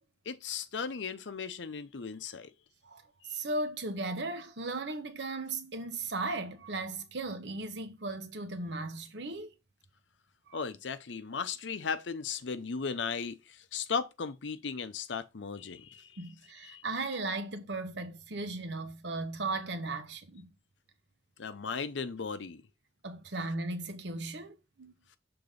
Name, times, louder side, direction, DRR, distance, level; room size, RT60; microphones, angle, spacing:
voice 1, 0.3-2.5 3.2-3.4 10.5-16.1 16.6-16.8 21.4-22.6, left 5 dB, 75° left, 0.6 m, -36 dB
voice 2, 3.3-9.5 10.5-10.6 16.2-20.5 23.0-24.9, right 2 dB, 65° right, 1.1 m, -36 dB
6.9 x 3.8 x 3.9 m
head